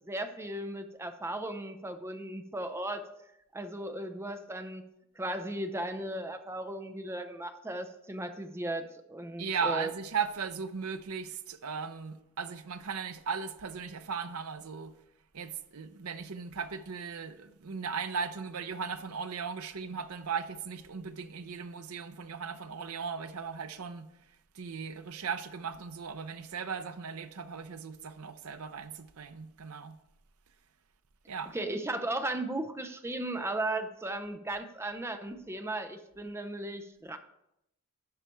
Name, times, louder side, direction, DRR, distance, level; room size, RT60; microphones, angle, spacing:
voice 1, 0.0-3.1 3.5-4.8 5.2-9.9 31.5-37.2, right 1 dB, 10° right, 0.6 m, -36 dB
voice 2, 9.4-14.9 15.3-24.1 24.5-30.0 31.3-31.6, right 6 dB, 70° right, 0.7 m, -37 dB
12.5 x 4.9 x 4.4 m
head